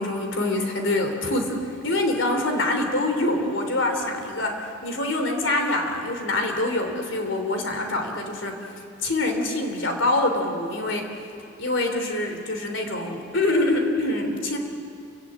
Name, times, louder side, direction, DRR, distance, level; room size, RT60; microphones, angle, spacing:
voice 1, 0.0-1.6 1.8-8.6 9.0-11.0 11.6-14.6, left 2 dB, 65° left, 4 dB, 3.3 m, -25 dB
29.0 x 15.5 x 8.9 m, 2.5 s
head